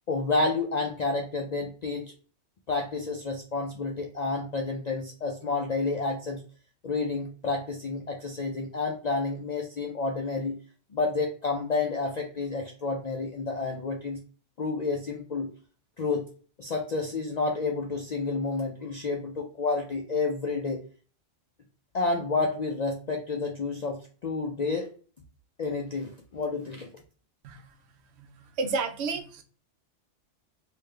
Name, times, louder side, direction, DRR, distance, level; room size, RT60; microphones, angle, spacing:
voice 1, 0.1-2.1 2.7-6.4 6.8-10.6 10.9-14.2 14.6-15.5 16.0-16.3 16.6-20.8 21.9-24.9 25.6-26.9, left 3 dB, 60° left, 1 dB, 0.4 m, -30 dB
voice 2, 27.4-27.7 28.2-29.4, right 4 dB, 70° right, 6 dB, 0.8 m, -32 dB
3.6 x 2.6 x 3.2 m, 0.40 s
omnidirectional pair, 1.2 m